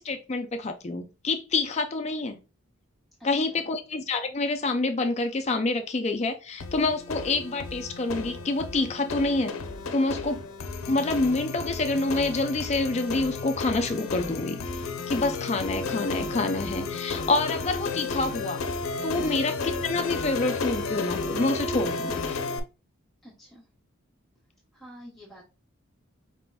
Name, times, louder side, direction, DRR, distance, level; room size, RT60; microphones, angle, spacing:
voice 1, 0.0-2.4 3.2-9.5 9.9-10.4 10.9-18.6 19.0-22.4, left 3 dB, 30° left, 0.4 m, -27 dB
voice 2, 3.3-3.7 23.2-23.7 24.7-25.5, equal, ahead, 1.0 m, -48 dB
sound 1, 6.6-22.6, left 3 dB, 80° left, 0.6 m, -33 dB
4.8 x 3.7 x 2.2 m
head